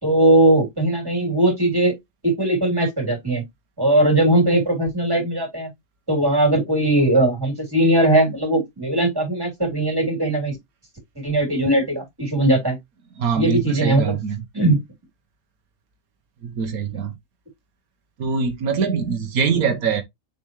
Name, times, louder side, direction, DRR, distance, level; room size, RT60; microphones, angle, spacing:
voice 1, 0.0-1.9 2.2-3.4 3.8-5.7 6.1-10.6 11.2-12.8 13.4-14.2 14.5-14.8, right 1 dB, 15° right, 3.3 m, -19 dB
voice 2, 13.2-14.4 16.4-17.1 18.2-20.0, right 6 dB, 90° right, 1.5 m, -23 dB
6.9 x 4.3 x 3.1 m
omnidirectional pair, 1.5 m